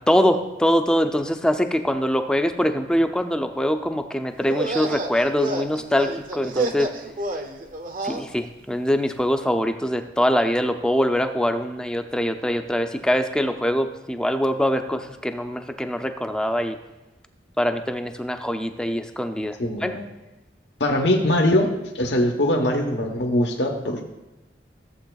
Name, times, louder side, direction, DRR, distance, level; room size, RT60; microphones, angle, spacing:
voice 1, 0.1-6.9 8.0-16.8 17.6-20.0, equal, 5° left, 7 dB, 0.4 m, -23 dB
sound 1, 4.4-8.3, right 2 dB, 45° right, 0.6 m, -29 dB
voice 2, 19.6-20.1 20.8-21.7 21.9-24.0, left 1 dB, 75° left, 4 dB, 1.0 m, -21 dB
14.5 x 7.7 x 2.3 m, 1.0 s
head